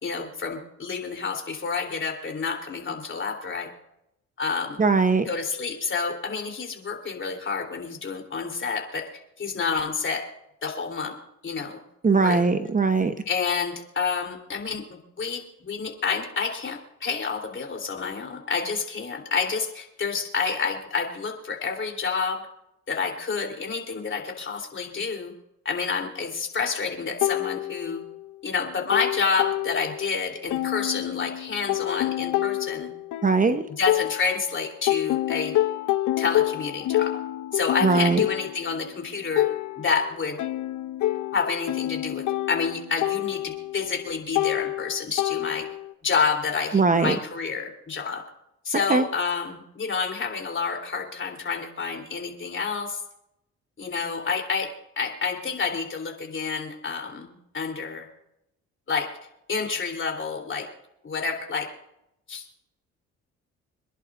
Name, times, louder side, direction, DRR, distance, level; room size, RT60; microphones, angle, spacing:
voice 1, 0.0-3.7 4.4-4.8 5.3-9.1 9.4-10.3 10.6-11.1 11.4-11.8 12.2-12.5 13.3-22.4 22.9-25.3 25.7-28.0 28.4-32.9 33.8-35.5 36.2-37.2 37.5-39.5 39.8-40.4 41.3-45.7 46.0-48.2 48.7-53.0 53.8-54.7 55.0-58.1 58.9-59.1 59.5-60.7 61.0-61.7 62.3-62.6, left 5 dB, 40° left, 3 dB, 3.5 m, -29 dB
voice 2, 4.8-5.2 12.0-13.1 33.2-33.6 37.8-38.2 46.7-47.2 48.9-49.0, right 4 dB, 25° right, 9 dB, 1.0 m, -20 dB
sound 1, 27.2-28.3 28.6-30.2 30.5-34.5 34.9-45.9, left 14 dB, 80° left, 0.6 m, -28 dB
27.5 x 11.0 x 2.6 m, 0.83 s
cardioid pair, 90°, 30 cm